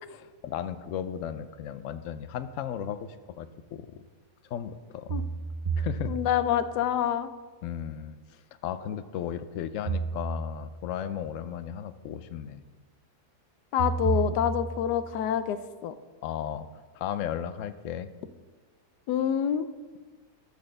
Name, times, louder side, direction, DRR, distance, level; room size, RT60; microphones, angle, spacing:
voice 1, 0.1-3.9 4.5-5.1 5.8-6.1 7.6-12.6 16.2-16.7 16.9-18.1, left 9 dB, 70° left, 12 dB, 0.7 m, -35 dB
sound 1, 2.4-2.5 5.1-6.7 9.9-10.9 13.8-15.1, right 5 dB, 50° right, 0.5 m, -32 dB
voice 2, 6.1-7.3 13.7-15.6 15.8-15.9 19.1-19.7, left 9 dB, 85° left, 12 dB, 1.2 m, -26 dB
11.0 x 4.2 x 6.7 m, 1.4 s
omnidirectional pair, 1.7 m